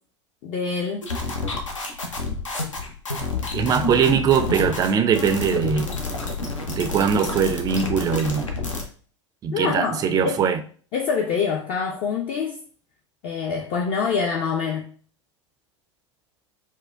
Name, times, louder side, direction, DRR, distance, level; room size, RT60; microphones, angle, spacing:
voice 1, 0.4-1.0 9.5-10.4 10.9-12.6 13.2-14.9, left 5 dB, 35° left, 0.5 m, -25 dB
sound 1, 1.0-8.8, left 3 dB, 80° left, 0.7 m, -29 dB
voice 2, 3.5-5.9 6.7-8.5 9.4-10.6, right 7 dB, 25° right, 0.4 m, -21 dB
4.4 x 2.1 x 2.4 m
figure-of-eight pair, 85°, 16 cm